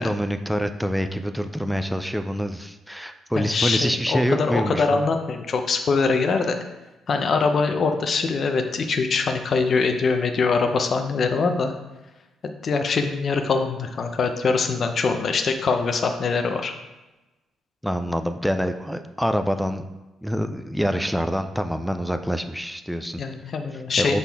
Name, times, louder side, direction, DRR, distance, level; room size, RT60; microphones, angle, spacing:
voice 1, 0.0-5.0 17.8-19.8 20.2-23.2 24.0-24.2, equal, ahead, 8 dB, 0.4 m, -26 dB
voice 2, 3.3-6.6 7.1-11.7 12.4-16.7 23.2-24.2, left 4 dB, 45° left, 6 dB, 0.7 m, -23 dB
7.4 x 4.1 x 3.5 m, 1.1 s
cardioid pair, 110°, 0 cm